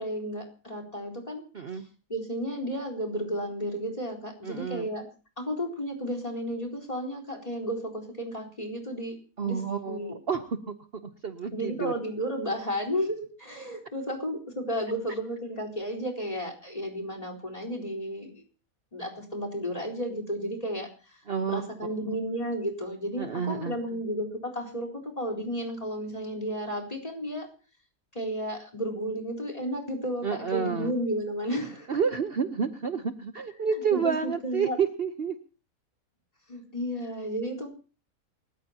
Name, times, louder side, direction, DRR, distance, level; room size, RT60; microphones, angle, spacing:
voice 1, 0.0-1.4 1.7-1.8 2.1-5.0 5.4-9.2 9.4-9.6 9.9-10.1 11.5-18.4 18.9-21.2 21.5-27.5 28.1-31.9 33.9-34.8 36.5-37.7, equal, 25° left, 4 dB, 4.3 m, -33 dB
voice 2, 4.4-4.9 9.4-10.7 11.2-11.9 21.3-21.6 23.2-23.8 30.2-30.9 31.9-35.4, right 6 dB, 45° right, 8 dB, 1.1 m, -29 dB
28.0 x 14.5 x 2.9 m, 0.36 s
omnidirectional pair, 1.5 m